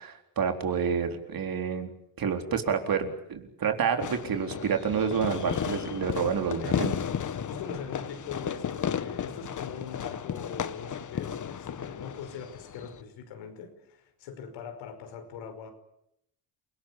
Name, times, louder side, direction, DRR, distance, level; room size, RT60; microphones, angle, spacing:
voice 1, 0.0-1.9 2.2-7.0, right 6 dB, 55° right, 5 dB, 4.1 m, -29 dB
Fireworks, 4.0-13.0, left 8 dB, 45° left, 1.5 m, -34 dB
voice 2, 7.4-15.7, left 7 dB, 85° left, 7 dB, 5.5 m, -41 dB
29.0 x 19.0 x 8.5 m, 0.78 s
cardioid pair, 90°, 43 cm